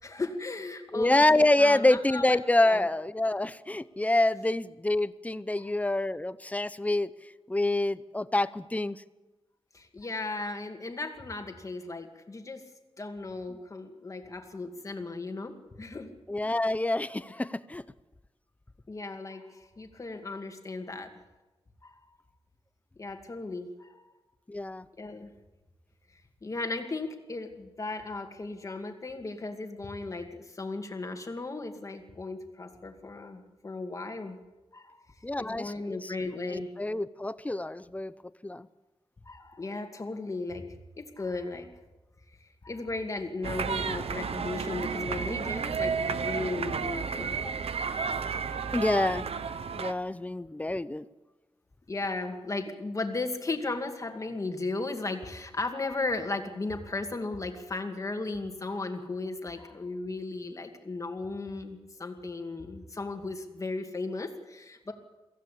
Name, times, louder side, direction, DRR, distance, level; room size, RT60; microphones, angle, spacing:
voice 1, 0.0-2.4 2.6-2.8 5.6-5.7 9.7-12.6 13.0-16.1 18.9-21.1 21.8-22.0 23.0-24.1 25.0-25.3 26.4-34.4 34.7-35.1 35.4-36.7 39.3-41.7 42.6-47.5 48.5-48.8 51.9-64.9, left 3 dB, 30° left, 5 dB, 2.3 m, -36 dB
voice 2, 0.9-7.1 7.5-9.0 16.3-17.8 24.5-24.8 35.2-38.1 38.4-38.7 48.7-49.3 49.8-51.0, left 2 dB, 15° left, 15 dB, 0.6 m, -27 dB
sound 1, 43.4-49.9, right 5 dB, 75° right, 1.0 m, -32 dB
24.0 x 15.5 x 8.5 m, 1.1 s
wide cardioid pair, 160°, 10 cm